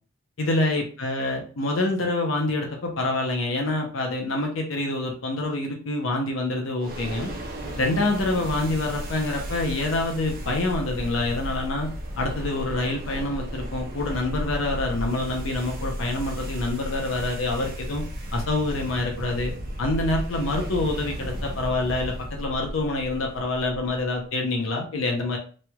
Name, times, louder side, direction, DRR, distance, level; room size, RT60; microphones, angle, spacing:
voice 1, 0.4-7.3 7.8-11.9 12.2-18.0 18.3-19.5 19.8-25.4, left 2 dB, 80° left, 1 dB, 0.7 m, -26 dB
sound 1, 6.8-24.2, equal, 45° right, 0.7 m, -34 dB
3.1 x 2.3 x 2.9 m, 0.39 s
head